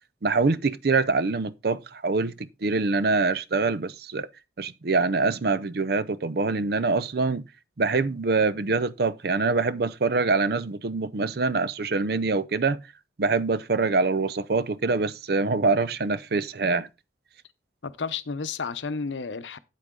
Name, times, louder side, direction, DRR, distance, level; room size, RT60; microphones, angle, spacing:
voice 1, 0.2-4.3 4.6-7.4 7.8-12.8 13.2-16.9, right 3 dB, 55° right, 0.6 m, -24 dB
voice 2, 17.8-19.6, left 5 dB, 85° left, 0.8 m, -32 dB
8.4 x 8.3 x 3.8 m
head